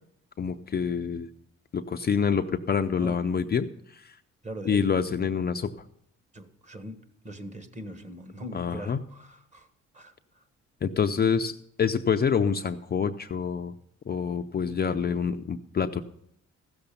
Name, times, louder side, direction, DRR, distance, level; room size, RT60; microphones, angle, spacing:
voice 1, 0.4-1.3 1.7-4.2 4.6-5.7 8.5-9.0 10.8-13.7 14.1-16.0, left 6 dB, 35° left, 6 dB, 0.5 m, -27 dB
voice 2, 4.4-4.8 6.3-7.0 7.2-9.7 9.9-10.4, right 1 dB, 25° right, 9 dB, 1.4 m, -41 dB
15.0 x 6.9 x 6.9 m, 0.71 s
cardioid pair, 90°, 30 cm